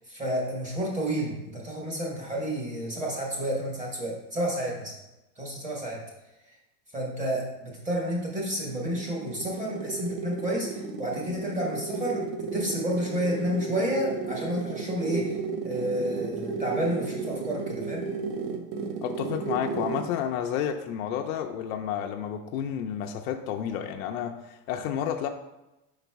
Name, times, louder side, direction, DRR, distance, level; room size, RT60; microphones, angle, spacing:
voice 1, 0.1-4.9 5.4-6.0 6.9-12.2 12.5-15.4 15.6-18.0, equal, 15° right, -2 dB, 1.3 m, -30 dB
sound 1, 8.4-20.2, right 4 dB, 45° right, 0.7 m, -34 dB
voice 2, 19.0-25.3, left 9 dB, 65° left, 3 dB, 0.5 m, -31 dB
5.3 x 4.0 x 4.6 m, 0.96 s
supercardioid pair, 165°, 45 cm